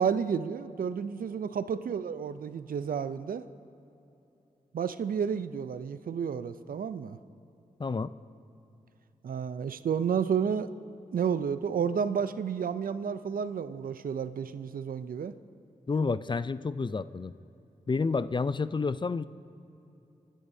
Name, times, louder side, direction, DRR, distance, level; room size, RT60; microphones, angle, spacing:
voice 1, 0.0-3.4 4.7-7.2 9.2-10.7 11.1-15.4, right 7 dB, 70° right, 13 dB, 0.5 m, -31 dB
voice 2, 7.8-8.1 15.9-17.3 17.9-19.3, left 4 dB, 30° left, 15 dB, 0.4 m, -29 dB
29.0 x 10.0 x 2.7 m, 2.9 s
cardioid pair, 40°, 15 cm